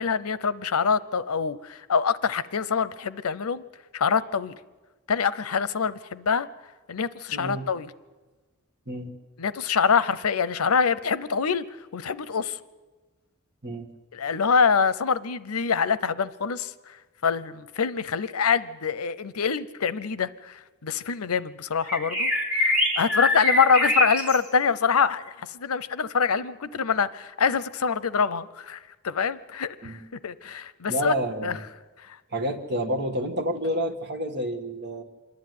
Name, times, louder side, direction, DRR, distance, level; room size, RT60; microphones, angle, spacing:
voice 1, 0.0-3.6 3.9-4.6 5.1-6.5 6.9-7.9 9.4-11.6 11.9-12.6 14.1-16.7 17.2-20.5 20.8-22.3 23.0-25.2 25.5-28.8 29.0-30.0 30.2-31.1 31.4-31.6, left 6 dB, 90° left, 16 dB, 0.7 m, -25 dB
voice 2, 7.3-7.7 8.9-9.1 13.6-13.9 29.8-30.0 30.9-31.6 32.3-35.0, right 1 dB, 50° right, 5 dB, 1.6 m, -29 dB
sound 1, 21.8-24.4, left 1 dB, 5° right, 4.0 m, -24 dB
26.5 x 11.0 x 9.4 m, 1.2 s
head